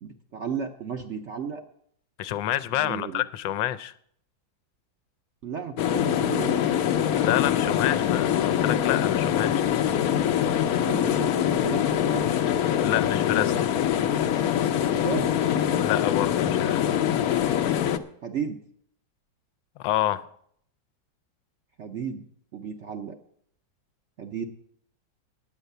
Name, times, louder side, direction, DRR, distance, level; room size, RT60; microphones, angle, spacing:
voice 1, 0.0-1.6 2.7-3.2 5.4-6.7 10.8-11.8 12.1-12.3 14.9-15.4 18.2-18.6 21.8-22.2 22.5-23.2 24.2-24.5, right 6 dB, 60° right, 0.8 m, -34 dB
voice 2, 2.2-3.9 7.2-9.6 12.8-13.9 15.8-16.9 19.8-20.2, left 13 dB, 85° left, 1.3 m, -28 dB
sound 1, 5.8-18.0, left 10 dB, 65° left, 1.0 m, -24 dB
9.7 x 9.0 x 6.7 m
omnidirectional pair, 2.0 m